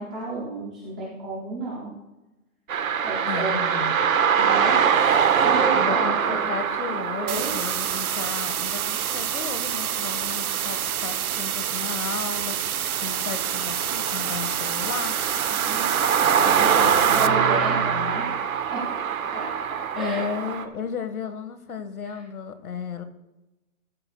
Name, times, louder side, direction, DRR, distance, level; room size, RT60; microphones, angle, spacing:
voice 1, 0.0-1.9 3.0-3.5 4.3-4.9 5.4-6.4 7.2-7.5 15.5-15.9 16.6-18.3 18.7-19.5 19.9-20.3 22.1-22.2, right 3 dB, 5° right, -6 dB, 0.6 m, -32 dB
sound 1, 2.7-20.6, right 7 dB, 70° right, 1.5 m, -25 dB
voice 2, 3.3-3.9 5.7-15.5 16.4-18.4 19.9-23.0, left 6 dB, 90° left, 10 dB, 1.8 m, -34 dB
sound 2, 7.3-17.3, right 9 dB, 85° right, 0.9 m, -28 dB
16.5 x 15.0 x 2.4 m, 1.0 s
hypercardioid pair, 170°, 42 cm